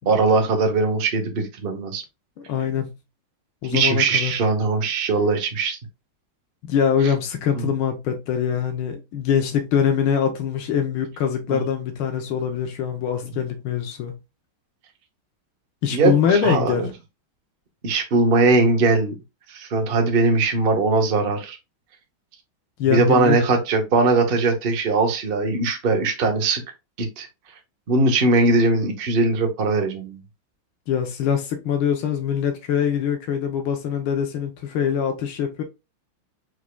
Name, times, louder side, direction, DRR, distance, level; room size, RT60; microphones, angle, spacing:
voice 1, 0.1-2.0 3.7-5.8 7.5-7.6 11.5-11.6 15.9-16.9 17.8-19.1 19.5-21.6 22.9-26.6 27.0-27.3 27.9-30.2, right 3 dB, 45° right, 0.7 m, -20 dB
voice 2, 2.4-2.9 3.6-4.3 6.6-14.1 15.8-16.9 22.8-23.4 30.9-35.6, left 8 dB, 85° left, 1.6 m, -23 dB
4.9 x 4.6 x 2.2 m
omnidirectional pair, 2.2 m